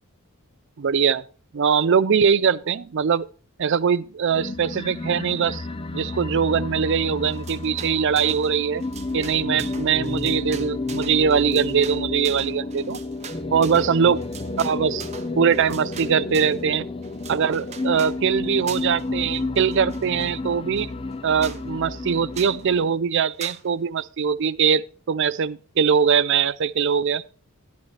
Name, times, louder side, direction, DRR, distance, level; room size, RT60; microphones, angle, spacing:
voice 1, 0.8-1.2 1.5-3.3 3.6-5.7 5.9-8.8 9.1-13.0 13.5-14.2 14.6-15.0 15.4-16.8 17.3-20.9 21.2-27.2, right 6 dB, 55° right, 0.4 m, -22 dB
sound 1, 4.3-22.9, left 2 dB, 25° left, 0.6 m, -31 dB
sound 2, 7.2-8.5 8.8-16.6 17.0-18.2 18.7-19.1 19.3-20.3 20.8-20.9 21.1-21.2 21.4-21.6 22.3-22.6 23.4-23.6, right 6 dB, 30° right, 0.8 m, -41 dB
13.5 x 10.5 x 3.2 m
head